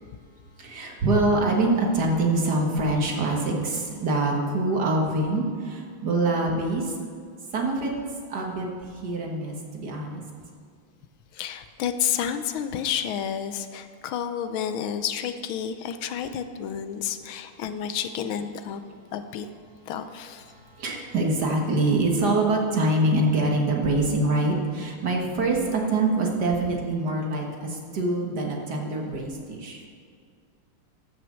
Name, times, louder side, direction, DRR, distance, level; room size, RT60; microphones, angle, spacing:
voice 1, 0.6-6.9 7.5-7.9 8.3-8.7 9.0-10.2 20.8-29.8, right 2 dB, 55° right, 0 dB, 1.9 m, -24 dB
voice 2, 11.3-18.8 19.1-19.5 19.9-20.5, left 8 dB, 80° left, 10 dB, 1.5 m, -30 dB
14.0 x 6.1 x 6.2 m, 2.1 s
omnidirectional pair, 2.3 m